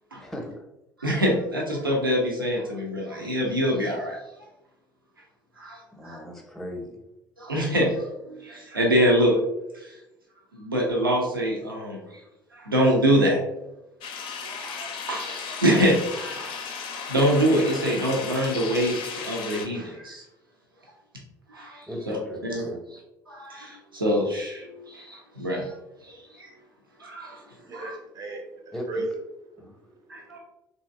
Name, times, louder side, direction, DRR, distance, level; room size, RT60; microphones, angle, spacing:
voice 1, 0.2-0.5 6.0-7.0 21.9-22.8 28.7-28.9 29.6-29.8, equal, 5° left, 1 dB, 0.7 m, -37 dB
voice 2, 1.0-4.2 5.6-6.2 7.4-9.4 9.7-9.9 10.5-12.2 12.5-13.4 14.4-16.6 17.1-20.2 21.5-22.2 22.4-22.6 23.3-25.8 26.0-26.5 27.0-27.4 27.7-27.9 30.1-30.4, equal, 90° right, -2 dB, 0.5 m, -25 dB
sound 1, 14.0-19.7, left 6 dB, 50° left, 0.4 m, -35 dB
voice 3, 27.6-29.1 29.5-30.0, right 2 dB, 35° right, 2 dB, 0.5 m, -36 dB
3.0 x 2.6 x 2.4 m, 0.90 s
figure-of-eight pair, 55°, 11 cm